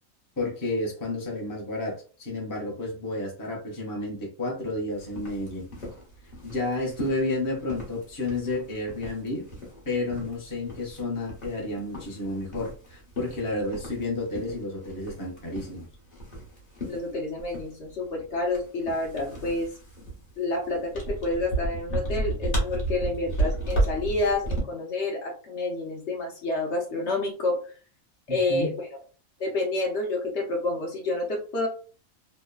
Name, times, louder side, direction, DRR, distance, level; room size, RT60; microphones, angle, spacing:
voice 1, 0.4-5.7 6.4-9.5 9.8-15.9 28.3-28.7, left 2 dB, 20° left, -3 dB, 0.6 m, -31 dB
sound 1, 4.9-24.6, right 2 dB, 35° left, 1.0 m, -34 dB
voice 2, 16.9-19.7 20.4-27.6 28.3-28.7 29.4-31.7, left 2 dB, 60° left, -1 dB, 0.9 m, -29 dB
3.0 x 2.1 x 2.2 m, 0.38 s
omnidirectional pair, 1.4 m